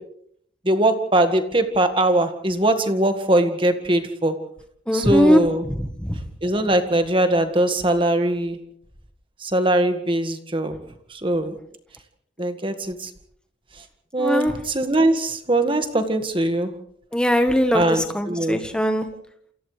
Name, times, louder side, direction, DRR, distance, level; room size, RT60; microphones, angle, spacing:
voice 1, 0.7-4.4 4.9-5.7 6.4-8.6 9.4-10.8 11.2-11.6 12.4-13.1 14.1-16.7 17.7-18.6, right 1 dB, 25° right, 7 dB, 1.8 m, -21 dB
voice 2, 4.9-5.4 5.8-6.1 14.2-14.5 17.1-19.1, equal, 5° left, 6 dB, 1.3 m, -20 dB
28.5 x 28.0 x 3.4 m, 0.67 s
head